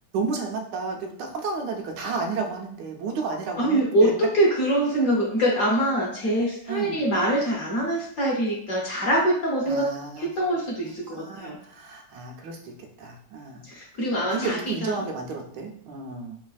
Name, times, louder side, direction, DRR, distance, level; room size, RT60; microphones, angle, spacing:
voice 1, 0.1-4.1 6.7-7.0 9.6-10.3 11.1-13.6 14.1-16.4, right 4 dB, 80° right, 3 dB, 1.2 m, -32 dB
voice 2, 3.6-9.9 10.2-11.6 13.6-14.9, right 1 dB, 60° left, -3 dB, 1.0 m, -24 dB
3.3 x 2.3 x 2.3 m, 0.65 s
omnidirectional pair, 1.9 m